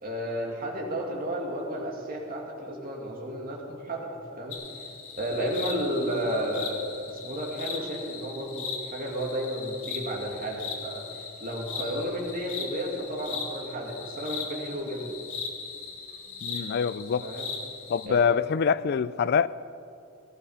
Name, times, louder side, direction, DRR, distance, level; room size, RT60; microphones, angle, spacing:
voice 1, 0.0-4.6 5.2-15.2 17.2-17.5 18.1-18.2, equal, 40° right, 2.5 m, -32 dB
sound 1, 4.5-18.1, left 5 dB, 70° left, 1.9 m, -38 dB
voice 2, 16.4-17.3 17.9-19.5, left 6 dB, 50° left, 0.3 m, -25 dB
18.0 x 11.5 x 5.6 m
head